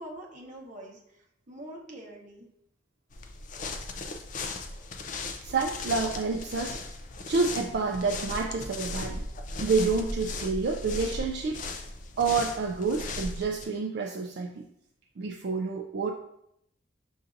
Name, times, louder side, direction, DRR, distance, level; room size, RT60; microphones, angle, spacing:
voice 1, 0.0-2.5, right 1 dB, 45° right, -1 dB, 0.9 m, -44 dB
sound 1, 3.1-13.7, left 3 dB, 45° left, 0.4 m, -37 dB
voice 2, 5.4-6.8 7.3-9.3 9.6-11.6 12.2-14.6 15.2-16.1, right 4 dB, 65° right, 1 dB, 0.4 m, -28 dB
6.8 x 2.6 x 2.5 m, 0.75 s
head